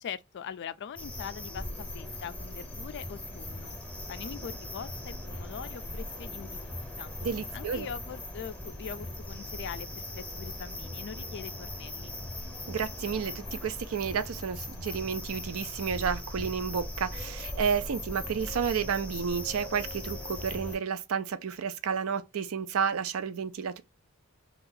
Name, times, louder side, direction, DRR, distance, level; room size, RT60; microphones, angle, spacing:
voice 1, 0.0-3.7 4.1-7.1 7.5-12.1, left 7 dB, 55° left, 0.3 m, -42 dB
sound 1, 1.0-20.8, left 1 dB, 5° left, 0.8 m, -39 dB
voice 2, 7.2-7.9 12.7-23.8, right 6 dB, 70° right, 0.4 m, -31 dB
2.7 x 2.3 x 3.8 m
head